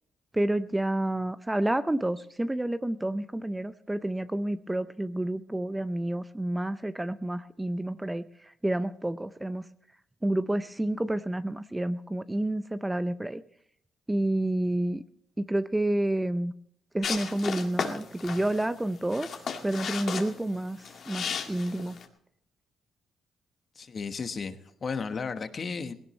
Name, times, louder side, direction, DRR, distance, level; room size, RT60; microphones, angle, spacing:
voice 1, 0.3-9.6 10.2-13.4 14.1-15.0 15.4-16.5 16.9-22.0, right 1 dB, 10° right, 12 dB, 0.5 m, -29 dB
sound 1, 17.0-22.0, left 6 dB, 60° left, 1.9 m, -35 dB
voice 2, 23.7-25.9, left 5 dB, 40° left, 9 dB, 1.2 m, -34 dB
18.5 x 17.0 x 3.1 m, 0.68 s
cardioid pair, 90°, 0 cm